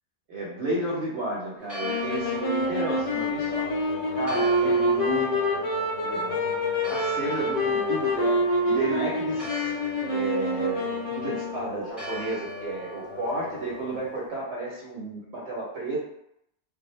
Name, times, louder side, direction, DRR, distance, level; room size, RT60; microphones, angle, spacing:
voice 1, 0.3-5.6 6.0-9.7 10.1-16.0, right 2 dB, 70° right, -5 dB, 0.9 m, -32 dB
Church bell, 1.6-14.3, right 1 dB, ahead, 0.5 m, -42 dB
sound 1, 1.8-11.7, left 1 dB, 55° left, 0.4 m, -27 dB
sound 2, 2.0-14.2, left 3 dB, 75° left, 0.9 m, -40 dB
2.1 x 2.0 x 3.0 m, 0.78 s
omnidirectional pair, 1.2 m